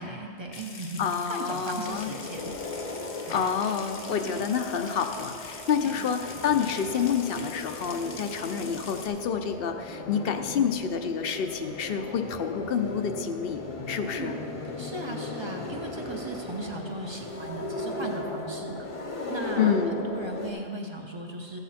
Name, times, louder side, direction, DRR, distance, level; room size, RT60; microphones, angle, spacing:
voice 1, 0.0-2.5 3.3-3.5 4.1-4.3 5.8-6.0 8.0-8.2 10.3-10.4 14.0-14.3 14.8-18.9 19.3-19.8 20.0-21.6, right 2 dB, 25° right, 1 dB, 0.9 m, -37 dB
Water tap faucet / Sink (filling or washing) / Trickle dribble, 0.5-9.1, left 4 dB, 85° left, 1.3 m, -44 dB
voice 2, 1.0-2.1 3.3-14.4 19.6-19.9, left 7 dB, 65° left, 7 dB, 0.8 m, -28 dB
sound 1, 1.9-20.5, left 2 dB, 35° left, 0.8 m, -37 dB
14.0 x 8.2 x 4.3 m, 2.7 s
omnidirectional pair, 1.1 m